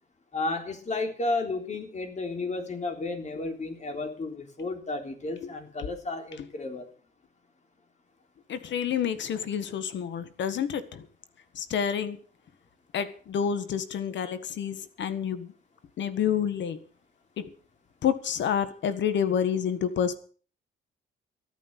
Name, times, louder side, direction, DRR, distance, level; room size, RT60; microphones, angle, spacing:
voice 1, 0.3-6.9, left 2 dB, 35° left, 3.5 m, -32 dB
voice 2, 8.5-11.0 11.5-12.2 12.9-15.5 16.0-16.8 17.4-17.5 18.0-20.1, left 8 dB, 70° left, 1.6 m, -28 dB
13.5 x 9.6 x 6.7 m
cardioid pair, 90°, 20 cm